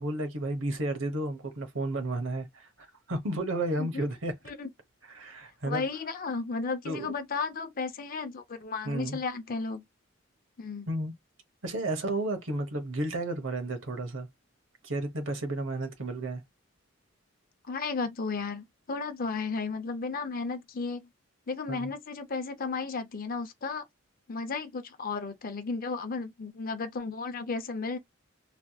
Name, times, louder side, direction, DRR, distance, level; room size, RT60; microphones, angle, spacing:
voice 1, 0.0-2.7 3.1-4.4 5.1-5.8 6.8-7.1 8.8-9.2 10.9-11.1 11.6-14.3 14.8-16.4 21.7-21.9, right 1 dB, 70° right, 1.1 m, -32 dB
voice 2, 5.7-9.8 10.6-10.9 17.7-21.1 21.5-23.8 24.3-28.0, left 4 dB, 45° left, 0.6 m, -34 dB
3.4 x 2.8 x 2.3 m
head